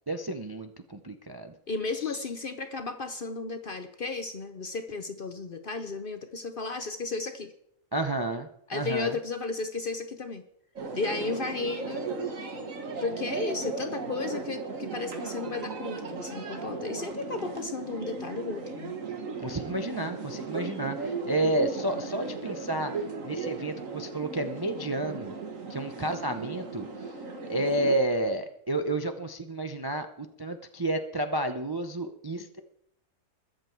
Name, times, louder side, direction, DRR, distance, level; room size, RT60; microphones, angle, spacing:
voice 1, 0.1-1.5 2.0-2.2 7.9-9.2 19.4-25.3 25.7-27.1 27.5-32.6, right 1 dB, 30° right, 7 dB, 0.4 m, -31 dB
voice 2, 1.7-7.5 8.7-10.4 10.9-12.1 13.0-19.0, left 4 dB, 50° left, 8 dB, 0.7 m, -34 dB
sound 1, 10.8-28.0, right 4 dB, 60° right, 1.9 m, -36 dB
21.5 x 7.5 x 4.5 m, 0.75 s
omnidirectional pair, 1.6 m